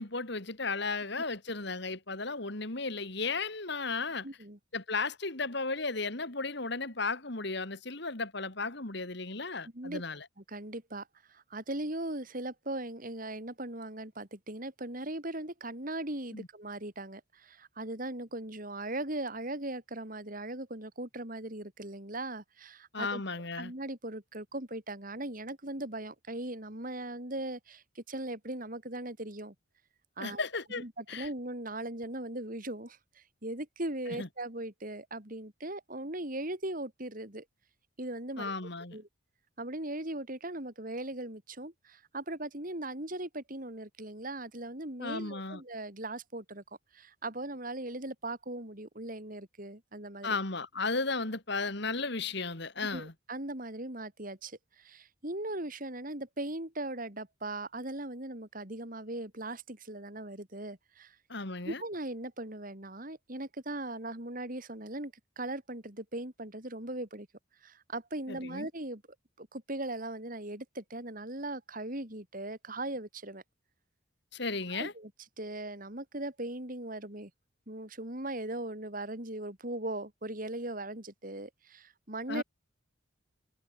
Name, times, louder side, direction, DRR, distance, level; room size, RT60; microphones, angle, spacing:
voice 1, 0.0-4.3 4.7-10.3 16.3-16.5 22.9-23.7 30.2-31.3 34.2-34.3 38.4-39.0 45.0-45.6 50.2-53.1 61.3-61.8 68.3-68.7 74.3-74.9 82.3-82.4, left 3 dB, 55° left, 2.5 m, -35 dB
voice 2, 4.2-4.6 9.7-10.0 10.5-23.2 23.6-29.5 30.2-30.4 30.8-37.4 38.0-38.5 38.9-39.1 39.6-46.6 46.9-50.4 52.9-61.2 61.6-67.3 67.6-69.0 69.4-73.4 74.7-75.1 75.4-77.3 77.7-82.4, right 1 dB, 40° right, 3.2 m, -39 dB
head